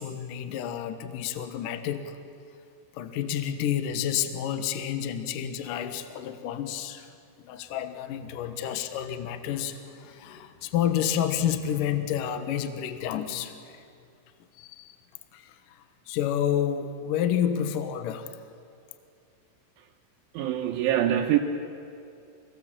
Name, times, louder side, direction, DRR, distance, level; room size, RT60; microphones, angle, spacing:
voice 1, 0.0-2.2 2.9-7.1 7.4-13.8 14.6-15.0 15.3-18.4, left 9 dB, 75° left, 9 dB, 2.0 m, -30 dB
voice 2, 20.3-21.4, right 11 dB, 75° right, 0 dB, 3.4 m, -24 dB
27.0 x 20.0 x 7.6 m, 2.5 s
omnidirectional pair, 5.6 m